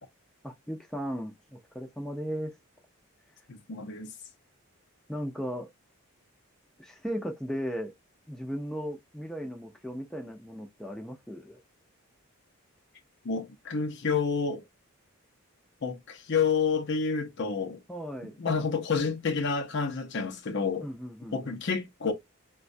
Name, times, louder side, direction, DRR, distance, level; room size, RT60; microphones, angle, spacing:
voice 1, 0.4-2.5 5.1-5.7 6.8-7.9 8.3-11.6 17.9-18.4 20.8-21.6, equal, ahead, 0.5 m, -36 dB
voice 2, 3.5-4.1 13.2-14.6 15.8-17.8 18.4-20.9 21.3-22.1, left 5 dB, 50° left, 0.6 m, -29 dB
4.0 x 2.2 x 2.6 m
head